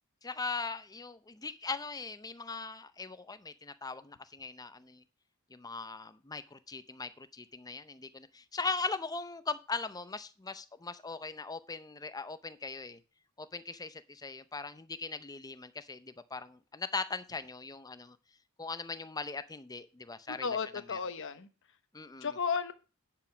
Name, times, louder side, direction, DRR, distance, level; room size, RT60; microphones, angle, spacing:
voice 1, 0.2-5.0 5.5-13.0 13.4-18.2 18.6-21.0 21.9-22.4, left 4 dB, 15° left, 0.6 m, -40 dB
voice 2, 20.3-21.5 22.2-22.7, left 5 dB, 60° left, 1.0 m, -34 dB
10.5 x 5.1 x 5.9 m
head